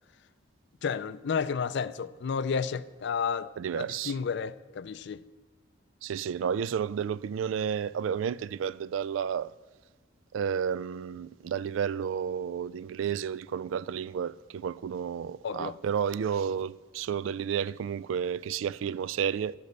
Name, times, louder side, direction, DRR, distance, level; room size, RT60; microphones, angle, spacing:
voice 1, 0.8-3.5 3.8-5.2 15.4-15.8, left 6 dB, 65° left, 0.4 m, -31 dB
voice 2, 3.6-4.1 6.0-9.5 10.3-19.5, right 7 dB, 85° right, 0.3 m, -31 dB
12.0 x 5.2 x 7.9 m
head